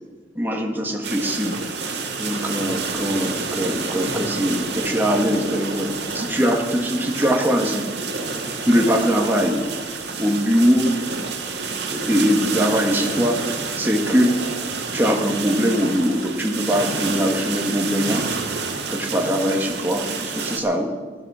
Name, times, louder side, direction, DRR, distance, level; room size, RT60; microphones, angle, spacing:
voice 1, 0.3-1.6 2.2-5.9 6.1-7.8 8.6-9.6 10.2-10.9 11.9-13.4 13.8-14.4 14.9-18.2 18.9-20.0 20.4-20.9, equal, 10° right, 1 dB, 1.6 m, -21 dB
sound 1, 1.0-20.6, right 4 dB, 70° right, 1.9 m, -29 dB
16.0 x 12.0 x 4.9 m, 1.4 s
head